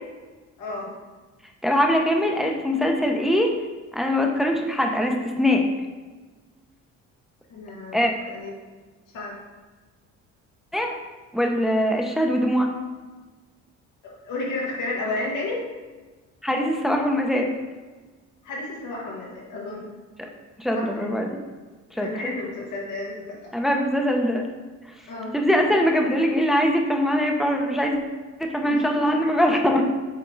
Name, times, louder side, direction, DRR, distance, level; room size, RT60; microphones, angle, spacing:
voice 1, 0.6-0.9 7.5-8.5 9.1-9.4 14.0-15.6 18.4-19.9 20.7-21.1 21.9-23.5 25.1-25.4 28.6-29.3, left 2 dB, 90° left, -3 dB, 2.0 m, -32 dB
voice 2, 1.6-3.5 3.9-5.6 7.9-8.1 10.7-10.9 11.3-12.7 16.4-17.5 20.2-20.3 20.6-21.4 21.9-22.3 23.5-24.5 25.3-28.0 28.4-29.8, equal, ahead, 1 dB, 0.8 m, -22 dB
7.9 x 3.6 x 3.9 m, 1.3 s
cardioid pair, 90°, 30 cm